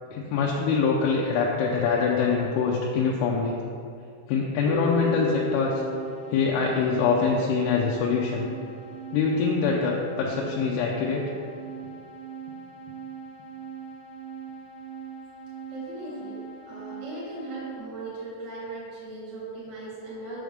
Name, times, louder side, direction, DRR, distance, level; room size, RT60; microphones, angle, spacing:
voice 1, 0.1-3.6 4.3-5.8 6.3-8.5 9.1-11.3, left 5 dB, 85° left, -2 dB, 3.0 m, -24 dB
sound 1, 4.7-8.4, left 3 dB, 85° right, 2.4 m, -35 dB
sound 2, 4.9-17.8, right 7 dB, 65° left, 2.3 m, -41 dB
voice 2, 15.7-20.4, right 1 dB, 70° right, -6 dB, 1.0 m, -38 dB
7.8 x 6.3 x 3.4 m, 2.3 s
omnidirectional pair, 5.4 m